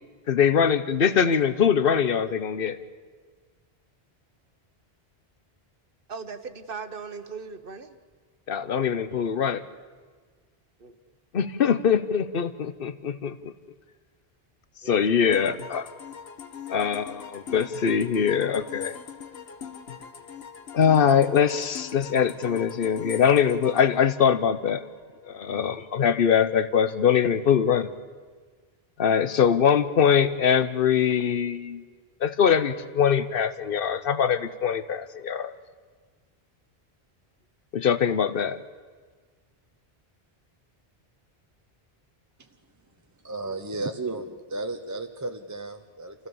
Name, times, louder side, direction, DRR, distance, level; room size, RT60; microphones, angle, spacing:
voice 1, 0.3-2.8 8.5-9.6 11.3-13.5 14.9-15.9 16.7-19.0 20.7-24.8 25.2-27.9 29.0-31.8 32.2-35.5 37.7-38.6, left 7 dB, 65° left, 13 dB, 1.1 m, -22 dB
voice 2, 6.1-8.0 10.8-11.0 14.8-15.5 43.4-43.8, right 5 dB, 60° right, 9 dB, 1.3 m, -40 dB
sound 1, 15.3-25.0, left 7 dB, 80° left, 1.3 m, -42 dB
voice 3, 43.2-46.1, right 2 dB, 20° right, 5 dB, 0.7 m, -33 dB
27.0 x 15.5 x 7.1 m, 1.5 s
omnidirectional pair, 1.0 m